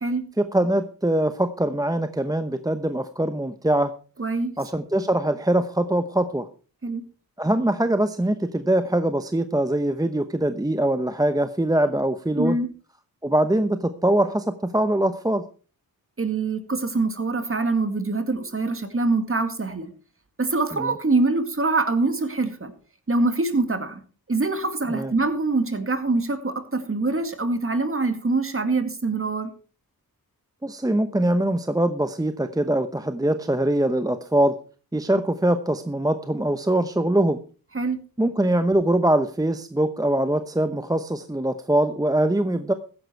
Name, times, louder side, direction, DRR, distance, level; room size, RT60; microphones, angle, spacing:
voice 1, 0.4-3.9 4.6-6.5 7.4-12.6 13.2-15.4 20.8-20.9 24.9-25.1 30.6-34.6 34.9-37.4 38.2-42.7, right 1 dB, 10° right, 10 dB, 0.8 m, -23 dB
voice 2, 4.2-4.5 6.8-7.0 12.4-12.7 16.2-19.9 20.4-22.7 23.1-24.0 24.3-29.5 37.7-38.0, right 3 dB, 35° right, 9 dB, 2.2 m, -24 dB
14.5 x 10.5 x 4.5 m, 0.38 s
cardioid pair, 75°, 37 cm